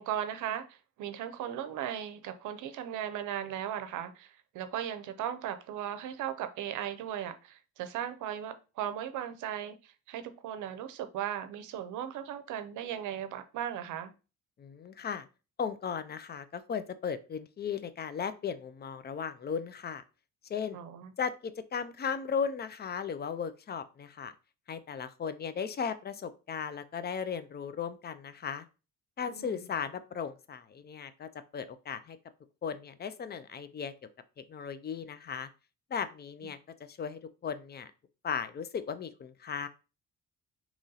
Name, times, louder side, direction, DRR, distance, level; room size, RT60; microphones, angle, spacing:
voice 1, 0.0-14.1 20.7-21.1 29.3-29.7, right 10 dB, 80° right, 0.6 m, -37 dB
voice 2, 14.6-15.3 15.6-20.0 20.5-20.8 21.2-24.3 24.7-28.7 29.2-32.2 32.6-33.9 34.4-35.5 35.9-36.6 36.9-37.9 38.2-39.7, left 6 dB, 35° left, 0.4 m, -36 dB
3.0 x 2.7 x 3.8 m
cardioid pair, 90°, 30 cm